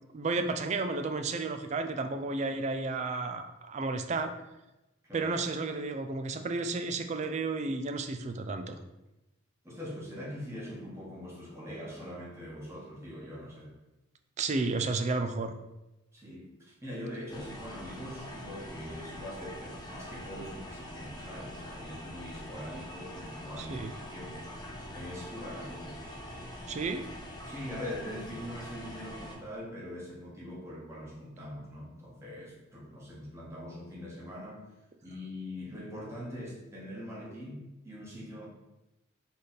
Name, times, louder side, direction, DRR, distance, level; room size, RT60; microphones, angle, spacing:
voice 1, 0.1-4.3 5.1-8.8 14.4-15.5 23.6-23.9 26.7-27.0, right 3 dB, 35° right, 7 dB, 0.3 m, -32 dB
voice 2, 9.6-13.7 16.1-16.5 16.8-23.8 24.1-26.0 27.4-34.7 35.0-38.5, equal, 15° right, -5 dB, 1.1 m, -42 dB
sound 1, 17.3-29.4, left 1 dB, 20° left, 0.6 m, -44 dB
4.0 x 3.3 x 4.0 m, 0.97 s
head